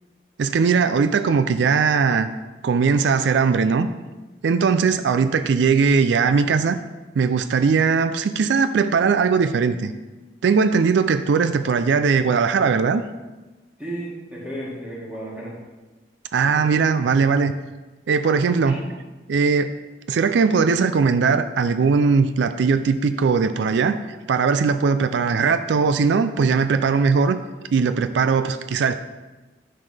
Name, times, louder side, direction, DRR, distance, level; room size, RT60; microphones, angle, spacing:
voice 1, 0.4-2.3 2.6-3.9 4.4-6.8 7.2-9.9 10.4-13.0 16.3-17.5 18.1-18.8 19.3-19.7 20.1-27.4 27.7-28.9, right 5 dB, 85° right, 10 dB, 0.4 m, -19 dB
voice 2, 13.8-15.6 16.4-16.8 18.6-18.8, right 1 dB, 10° right, -7 dB, 2.3 m, -34 dB
10.5 x 5.8 x 3.4 m, 1.2 s
head